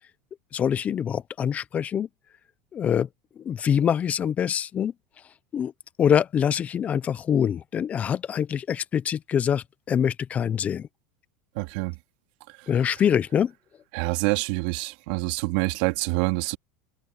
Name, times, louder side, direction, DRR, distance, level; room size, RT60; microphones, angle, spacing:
voice 1, 0.5-2.1 2.7-3.1 3.4-4.9 5.5-5.7 6.0-10.9 12.7-13.5, left 8 dB, 30° left, 0.9 m, -24 dB
voice 2, 11.6-12.0 13.9-16.6, right 24 dB, 65° right, 2.6 m, -26 dB
supercardioid pair, 115°, 5 cm